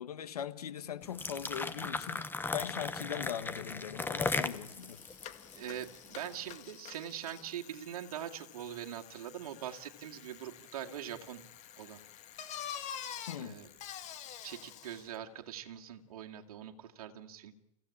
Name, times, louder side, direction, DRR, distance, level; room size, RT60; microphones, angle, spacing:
voice 1, 0.0-2.3 2.5-5.0 13.3-13.5, left 9 dB, 90° left, 12 dB, 1.4 m, -40 dB
sound 1, 1.0-6.3, left 3 dB, 10° left, 1.2 m, -37 dB
Bicycle, 4.0-4.1 4.4-15.2, left 9 dB, 40° left, 2.1 m, -48 dB
voice 2, 5.5-11.4 11.8-12.0 13.4-13.7 14.4-17.6, right 10 dB, 75° right, 3 dB, 2.3 m, -43 dB
29.0 x 16.0 x 8.6 m, 0.93 s
hypercardioid pair, 115°, 19 cm